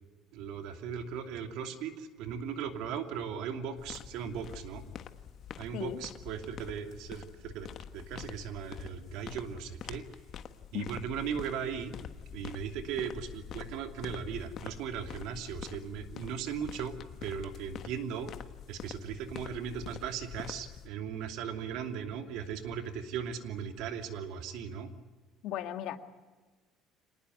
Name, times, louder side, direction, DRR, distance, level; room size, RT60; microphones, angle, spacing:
voice 1, 0.3-4.8 5.6-7.7 7.9-10.0 10.7-11.9 12.3-17.0 17.2-18.3 18.7-24.9, right 7 dB, 70° right, 6 dB, 2.8 m, -38 dB
sound 1, 3.8-20.9, left 9 dB, 45° left, 1.3 m, -46 dB
voice 2, 25.4-26.0, left 12 dB, 60° left, 8 dB, 1.9 m, -36 dB
26.0 x 19.5 x 9.5 m, 1.3 s
cardioid pair, 155°, 0 cm